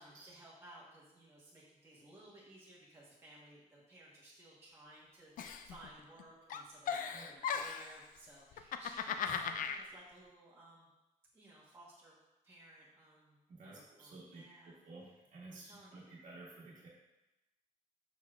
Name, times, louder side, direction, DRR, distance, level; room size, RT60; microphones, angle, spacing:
voice 1, 0.0-10.9 11.3-12.2 12.4-13.4 13.6-14.8 15.5-16.1, right 1 dB, 20° right, -8 dB, 1.2 m, -58 dB
Giggle, 5.4-6.2 6.5-8.0 8.5-9.8, left 7 dB, 75° left, 0.4 m, -38 dB
voice 2, 13.5-16.9, right 2 dB, 65° right, -7 dB, 1.3 m, -53 dB
6.9 x 6.2 x 2.4 m, 0.97 s
wide cardioid pair, 165°, 14 cm